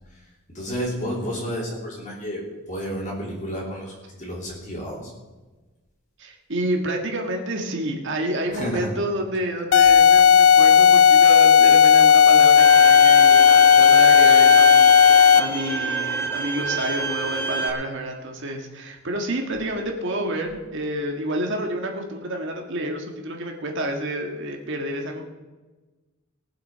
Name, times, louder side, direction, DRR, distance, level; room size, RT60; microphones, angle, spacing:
voice 1, 0.5-5.1 8.5-8.9, equal, 35° left, -4 dB, 3.1 m, -31 dB
voice 2, 6.2-25.2, right 1 dB, 60° right, 2 dB, 1.7 m, -29 dB
sound 1, 9.7-15.6, left 7 dB, 65° left, 0.4 m, -13 dB
Bowed string instrument, 12.6-17.7, right 3 dB, 10° left, 1.6 m, -27 dB
19.5 x 7.7 x 5.6 m, 1.2 s
head